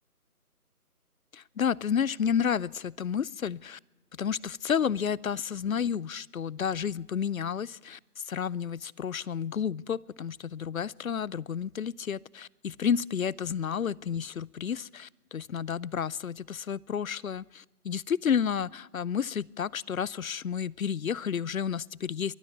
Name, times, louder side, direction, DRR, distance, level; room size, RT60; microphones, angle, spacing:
voice 1, 1.3-3.8 4.2-22.3, left 7 dB, 65° left, 26 dB, 0.6 m, -31 dB
22.5 x 13.5 x 8.4 m, 1.0 s
figure-of-eight pair, 170°, 45 cm